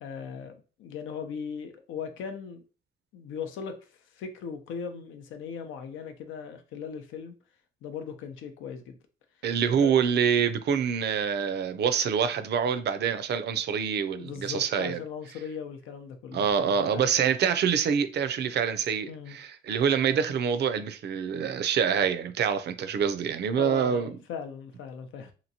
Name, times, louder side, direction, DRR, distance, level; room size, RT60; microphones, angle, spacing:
voice 1, 0.0-2.6 3.1-3.9 4.1-7.3 7.8-9.0 9.8-9.9 14.2-17.1 19.1-19.4 23.6-25.3, left 6 dB, 90° left, 0.6 m, -38 dB
voice 2, 9.4-15.0 16.3-24.1, right 7 dB, 60° right, 0.5 m, -26 dB
2.9 x 2.7 x 2.7 m
cardioid pair, 90°, 20 cm